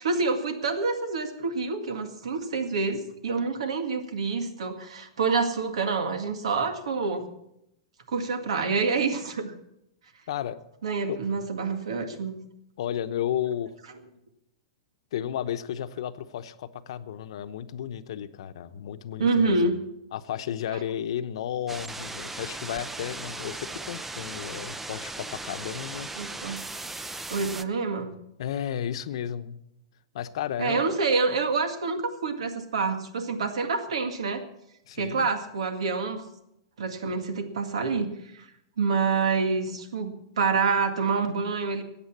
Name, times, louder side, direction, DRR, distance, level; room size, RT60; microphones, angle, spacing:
voice 1, 0.0-7.3 8.1-9.5 10.8-12.4 19.2-19.8 26.2-26.6 27.3-28.1 30.6-34.4 35.0-36.2 36.8-38.5 38.8-41.8, right 4 dB, 90° right, 8 dB, 1.9 m, -27 dB
voice 2, 10.3-10.6 11.1-11.2 12.8-13.7 15.1-19.8 20.1-26.3 28.4-29.6 30.1-31.0 34.9-35.3, left 10 dB, 70° left, 11 dB, 0.9 m, -33 dB
sound 1, 21.7-27.6, right 2 dB, 5° right, 0.4 m, -37 dB
14.5 x 8.9 x 7.3 m, 0.82 s
hypercardioid pair, 150°, 3 cm